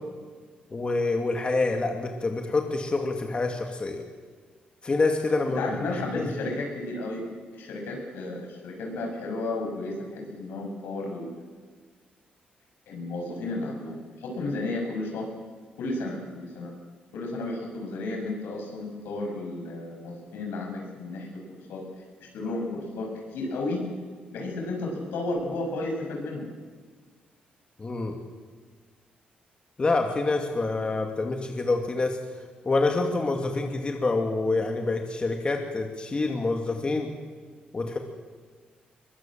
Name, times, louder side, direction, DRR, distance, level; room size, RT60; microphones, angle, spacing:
voice 1, 0.7-4.0 4.8-5.7 6.1-6.3 27.8-28.2 29.8-32.2 32.6-37.1 37.7-38.0, left 3 dB, 30° left, 3 dB, 2.5 m, -26 dB
voice 2, 5.6-11.3 12.9-15.3 15.8-16.7 17.1-21.8 22.2-23.9 24.3-26.5, left 2 dB, 85° left, 2 dB, 7.1 m, -33 dB
22.5 x 20.5 x 7.7 m, 1.5 s
cardioid pair, 95°, 3 cm